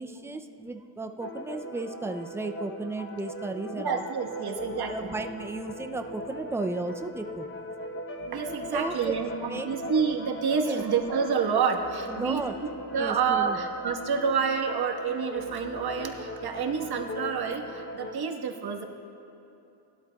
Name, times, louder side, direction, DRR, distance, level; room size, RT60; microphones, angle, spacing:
voice 1, 0.0-4.0 4.9-7.5 8.7-9.2 9.5-9.7 10.6-10.8 12.1-12.6 13.0-13.6, right 2 dB, 5° right, 6 dB, 0.3 m, -34 dB
sound 1, 1.2-18.2, equal, 25° left, 0.8 m, -39 dB
voice 2, 3.7-5.1 8.3-12.4 12.9-18.8, right 6 dB, 50° right, 3 dB, 1.4 m, -28 dB
19.5 x 12.5 x 2.3 m, 3.0 s
cardioid pair, 110°, 49 cm